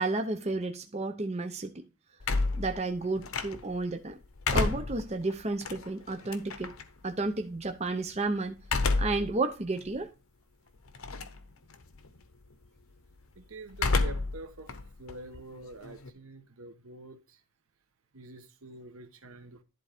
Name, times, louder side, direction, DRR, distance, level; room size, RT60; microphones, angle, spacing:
voice 1, 0.0-1.8 2.5-4.2 4.5-6.7 7.0-8.6 9.0-10.1, right 2 dB, 30° right, 0.7 m, -32 dB
sound 1, 2.2-3.8 4.2-6.8 8.6-9.3 9.8-9.9 10.9-11.4 11.7-12.2 13.7-14.4 14.7-16.1, left 3 dB, 75° left, 0.9 m, -30 dB
voice 2, 13.4-14.7 15.0-17.2 18.1-19.6, right 2 dB, 75° right, 1.1 m, -46 dB
11.0 x 3.9 x 5.0 m
head